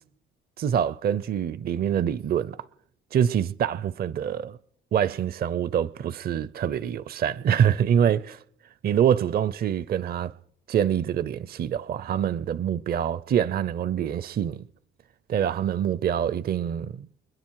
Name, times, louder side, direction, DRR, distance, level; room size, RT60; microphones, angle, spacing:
voice 1, 0.6-2.6 3.1-4.6 4.9-8.4 8.8-10.3 10.7-14.6 15.3-17.1, right 9 dB, 50° right, 0.5 m, -25 dB
29.5 x 10.0 x 4.6 m
cardioid pair, 90°, 20 cm